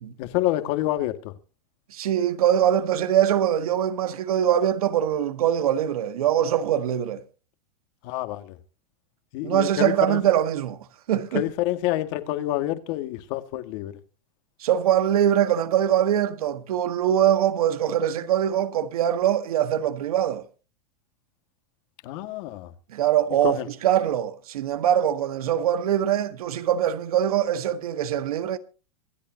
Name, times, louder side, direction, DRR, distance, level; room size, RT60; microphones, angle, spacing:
voice 1, 0.2-1.3 8.0-8.6 9.3-10.2 11.3-13.9 22.0-22.7 23.4-23.7, left 15 dB, 50° left, 1.9 m, -27 dB
voice 2, 1.9-7.2 9.4-10.8 11.1-11.4 14.6-20.4 22.9-28.6, right 10 dB, 80° right, 1.6 m, -23 dB
26.0 x 8.8 x 2.8 m
supercardioid pair, 140°, 18 cm